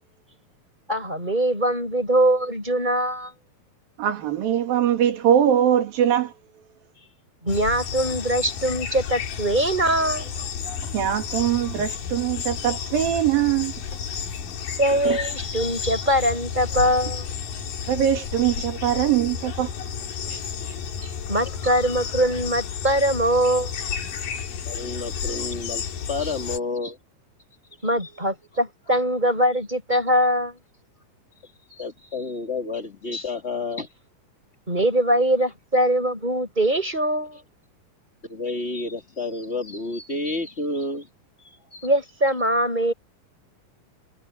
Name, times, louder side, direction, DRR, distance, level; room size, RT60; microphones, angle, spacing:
voice 1, 0.9-3.3 7.4-10.3 14.8-17.3 21.0-23.7 27.8-30.6 33.1-33.3 34.7-37.4 41.8-42.9, right 1 dB, 10° right, 6.3 m, -22 dB
voice 2, 4.0-6.3 10.8-13.7 14.9-15.2 17.9-19.7 20.3-20.4 20.7-20.8, right 10 dB, 70° right, 4.1 m, -22 dB
sound 1, 7.5-26.6, left 7 dB, 65° left, 4.0 m, -32 dB
voice 3, 24.7-27.0 28.0-28.6 31.7-33.9 35.4-35.5 38.3-41.1 41.4-42.4, left 3 dB, 20° left, 2.1 m, -31 dB
omnidirectional pair, 4.3 m